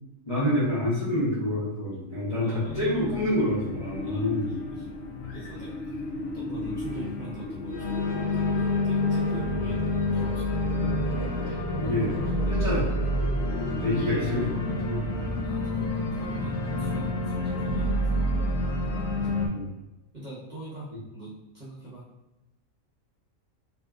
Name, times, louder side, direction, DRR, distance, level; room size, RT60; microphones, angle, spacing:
voice 1, 0.3-4.5 11.5-12.2 12.5-12.9 13.8-15.0 19.5-19.7, left 1 dB, 30° left, -10 dB, 0.9 m, -27 dB
voice 2, 2.4-2.8 4.0-4.8 5.3-5.8 6.3-10.5 15.4-18.3 20.1-22.0, right 2 dB, 35° right, -9 dB, 0.9 m, -43 dB
Organ, 2.6-19.5, left 1 dB, 65° left, 0.7 m, -29 dB
sound 1, 3.8-18.7, left 2 dB, 45° left, 1.1 m, -37 dB
2.9 x 2.5 x 2.3 m, 1.0 s
omnidirectional pair, 1.4 m